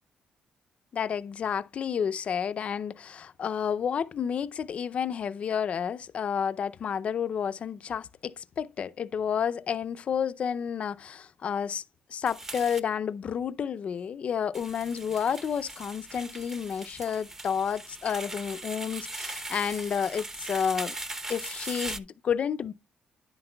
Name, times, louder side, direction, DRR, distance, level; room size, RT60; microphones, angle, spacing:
voice 1, 0.9-11.8 12.1-20.9 21.3-22.7, left 7 dB, 45° left, 0.5 m, -30 dB
sound 1, 12.3-12.8 14.5-22.0, right 2 dB, 15° right, 0.8 m, -39 dB
10.5 x 7.8 x 2.2 m
cardioid pair, 140°, 3 cm